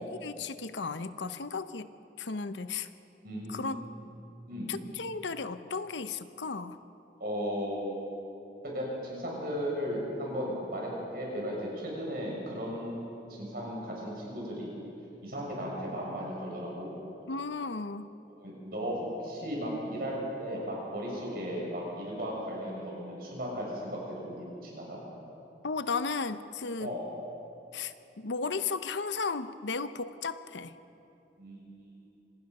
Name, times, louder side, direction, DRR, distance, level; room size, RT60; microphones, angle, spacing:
voice 1, 0.0-1.9 2.2-2.9 3.5-3.8 4.7-6.8 17.3-18.1 25.6-26.9 27.7-30.8, left 4 dB, 90° left, 12 dB, 0.8 m, -35 dB
voice 2, 3.2-3.8 4.5-4.8 7.2-8.0 8.6-14.7 15.2-17.0 18.3-25.0 26.8-27.1 31.4-31.9, equal, 55° right, -3 dB, 6.8 m, -36 dB
26.0 x 18.5 x 5.5 m, 2.9 s
head